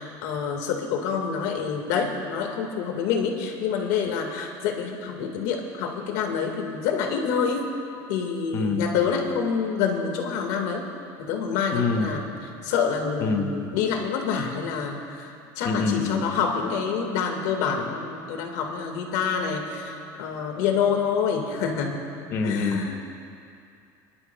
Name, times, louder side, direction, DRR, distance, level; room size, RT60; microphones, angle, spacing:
voice 1, 0.0-7.6 8.1-10.8 11.2-22.0 22.4-23.0, left 6 dB, 80° left, 2 dB, 1.7 m, -27 dB
voice 2, 8.5-8.9 11.7-12.1 13.2-13.5 15.6-16.2 22.3-23.0, left 4 dB, 30° left, 4 dB, 0.8 m, -25 dB
30.0 x 11.5 x 2.3 m, 2.4 s
cardioid pair, 180°, 9 cm